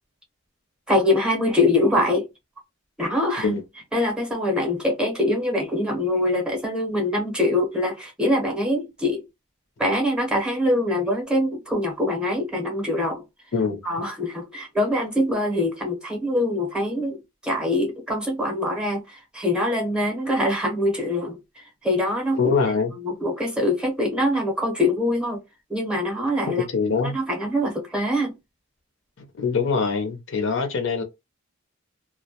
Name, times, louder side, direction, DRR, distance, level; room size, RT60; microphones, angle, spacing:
voice 1, 0.9-2.3 3.0-3.6 3.9-9.3 9.8-13.2 13.8-17.2 17.4-22.5 23.0-25.4 25.7-26.7 27.0-28.3, left 1 dB, 5° right, 0.7 m, -24 dB
voice 2, 22.3-22.9 26.7-27.2 29.4-31.0, left 5 dB, 60° left, 0.5 m, -23 dB
2.3 x 2.1 x 2.7 m
head